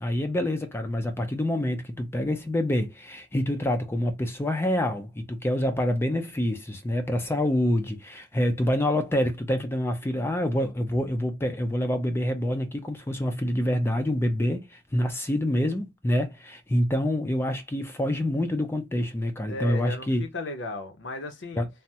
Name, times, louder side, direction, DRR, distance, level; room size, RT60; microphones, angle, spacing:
voice 1, 0.0-20.3 21.5-21.7, left 1 dB, 10° left, 0.4 m, -26 dB
voice 2, 19.5-21.6, left 2 dB, 70° left, 0.6 m, -35 dB
3.3 x 2.0 x 2.7 m
head